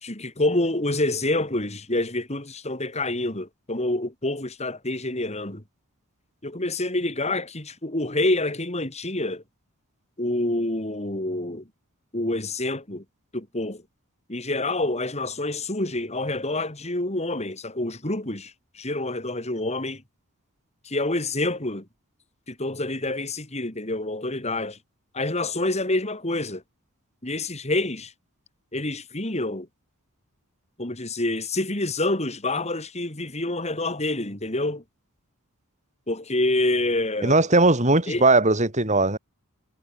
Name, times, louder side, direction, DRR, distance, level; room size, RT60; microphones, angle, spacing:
voice 1, 0.0-5.6 6.4-9.4 10.2-11.6 12.1-13.0 13.3-13.8 14.3-20.0 20.8-21.9 22.5-24.8 25.1-26.6 27.2-28.1 28.7-29.7 30.8-34.8 36.1-37.5 38.1-38.3, left 2 dB, 30° left, 3.8 m, -27 dB
voice 2, 37.2-39.2, right 2 dB, 35° right, 4.9 m, -19 dB
head